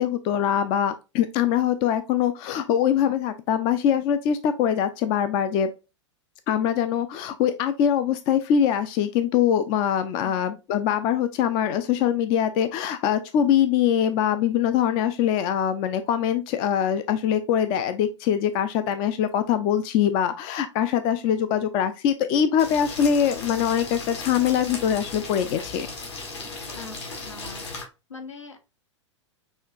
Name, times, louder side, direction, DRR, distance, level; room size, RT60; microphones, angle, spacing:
voice 1, 0.0-5.7 6.5-25.9, left 9 dB, 30° left, 0.4 m, -23 dB
sound 1, 22.6-27.8, left 3 dB, 60° left, 1.9 m, -36 dB
voice 2, 26.7-27.8 28.1-28.6, left 4 dB, 80° left, 1.0 m, -42 dB
6.3 x 2.9 x 2.4 m
figure-of-eight pair, 100°, 16 cm